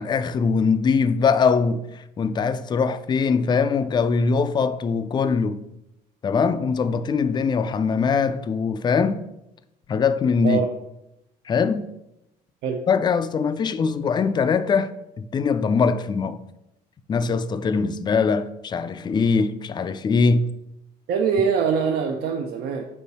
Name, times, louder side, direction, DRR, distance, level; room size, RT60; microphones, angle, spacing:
voice 1, 0.0-5.6 6.2-9.2 9.9-10.6 11.5-11.9 12.9-16.4 17.1-20.5, left 5 dB, 25° left, 0.3 m, -22 dB
voice 2, 21.1-22.8, right 6 dB, 75° right, 0.6 m, -23 dB
5.4 x 4.6 x 4.1 m
cardioid pair, 110°, 17 cm